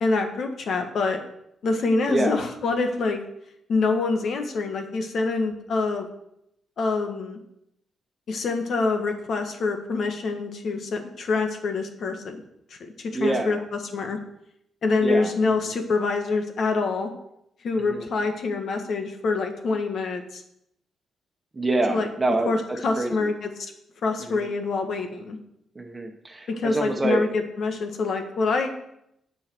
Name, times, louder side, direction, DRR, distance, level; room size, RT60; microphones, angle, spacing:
voice 1, 0.0-1.2 1.6-3.2 3.7-6.1 6.8-7.4 8.3-12.4 12.7-13.6 13.9-14.2 14.8-17.1 17.6-20.4 21.9-22.1 22.5-23.7 24.0-25.4 26.5-28.7, left 3 dB, 55° left, 5 dB, 1.5 m, -26 dB
voice 2, 2.1-2.4 13.1-13.6 15.0-15.3 17.9-18.1 21.5-23.3 24.2-24.5 25.7-27.2, right 2 dB, 15° right, 4 dB, 1.4 m, -26 dB
17.0 x 5.8 x 4.6 m, 0.78 s
cardioid pair, 140°, 0 cm